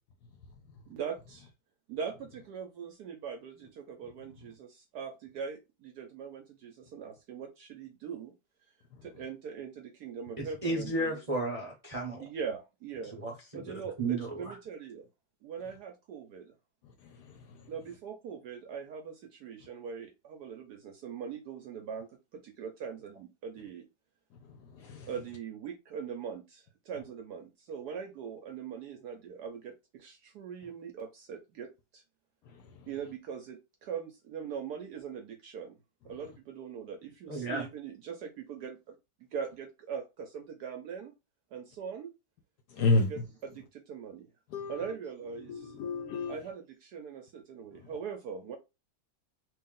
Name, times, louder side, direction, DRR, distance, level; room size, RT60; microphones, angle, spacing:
voice 1, 0.9-1.5 1.9-8.3 9.0-11.2 12.2-13.2 13.5-15.1 15.4-16.5 17.7-23.9 25.0-32.0 32.9-35.8 36.0-41.1 41.5-42.1 42.8-44.3 44.7-45.8 46.3-48.6, right 7 dB, 75° right, 0.9 m, -41 dB
voice 2, 10.4-12.2 13.2-13.6 14.0-14.6 37.3-37.6, right 2 dB, 50° right, 0.4 m, -33 dB
voice 3, 17.0-17.7 24.7-25.1 32.5-32.9 42.7-43.1 44.5-44.9 45.5-46.3 47.8-47.9, left 3 dB, 70° left, 1.0 m, -31 dB
3.1 x 2.8 x 3.6 m
omnidirectional pair, 2.1 m